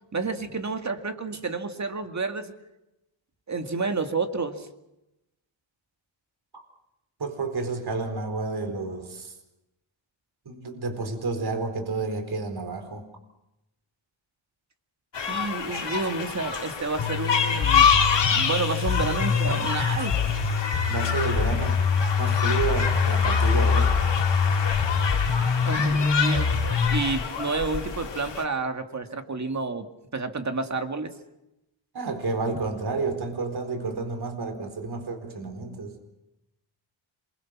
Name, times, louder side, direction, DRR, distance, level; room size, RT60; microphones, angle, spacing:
voice 1, 0.1-2.5 3.5-4.7 15.3-17.9 18.3-20.2 25.6-26.6 26.9-31.1, right 4 dB, 35° right, 7 dB, 2.2 m, -30 dB
voice 2, 7.2-9.3 10.5-13.1 20.9-21.8 22.2-24.0 31.9-36.0, right 3 dB, 50° right, 6 dB, 4.5 m, -30 dB
sound 1, 15.1-28.4, left 6 dB, 60° left, 2.5 m, -27 dB
sound 2, 17.0-27.0, left 5 dB, 80° left, 3.4 m, -24 dB
27.5 x 23.0 x 6.0 m, 0.91 s
wide cardioid pair, 95°, 49 cm